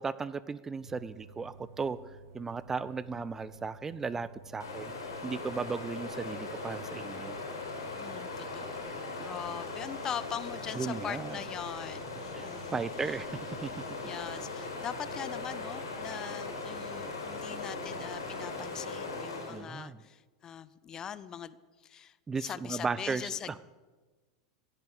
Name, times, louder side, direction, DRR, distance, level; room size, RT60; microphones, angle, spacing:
voice 1, 0.0-2.0 2.3-4.9 5.2-7.4 10.8-11.4 12.3-13.8 19.5-20.0 22.3-23.2 23.5-23.6, right 5 dB, 20° right, 17 dB, 0.6 m, -36 dB
sound 1, 0.8-18.6, right 2 dB, 70° right, 2.5 m, -53 dB
Stream, 4.6-19.7, left 3 dB, 80° left, 4.5 m, -39 dB
voice 2, 7.9-13.2 14.0-23.6, left 8 dB, 30° left, 17 dB, 0.7 m, -42 dB
sound 2, 12.1-14.6, right 1 dB, ahead, 7.0 m, -55 dB
16.0 x 10.0 x 7.9 m, 1.3 s
hypercardioid pair, 90°, 2 cm